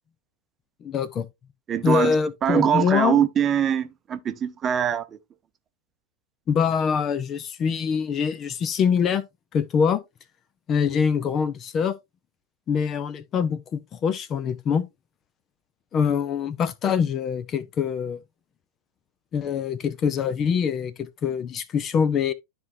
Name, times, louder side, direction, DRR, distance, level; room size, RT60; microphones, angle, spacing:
voice 1, 0.8-1.3 1.8-3.3 6.5-9.2 9.5-10.0 10.7-12.0 12.7-14.9 15.9-18.2 19.3-22.3, left 7 dB, 30° left, 0.7 m, -24 dB
voice 2, 1.7-2.1 2.4-5.0, right 9 dB, 25° right, 0.8 m, -22 dB
12.5 x 4.3 x 2.6 m
figure-of-eight pair, 90°, 0 cm